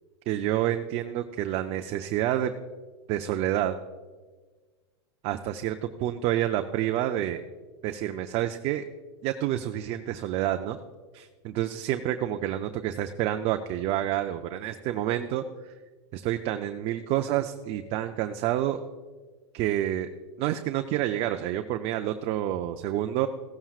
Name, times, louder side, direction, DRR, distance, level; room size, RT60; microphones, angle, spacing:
voice 1, 0.3-2.5 3.1-3.7 5.2-7.4 7.8-8.9 9.2-10.8 11.1-15.7 16.1-18.8 19.5-20.1 20.4-23.3, right 12 dB, 45° right, 7 dB, 0.6 m, -28 dB
15.5 x 12.5 x 2.4 m, 1.4 s
hypercardioid pair, 115°, 15 cm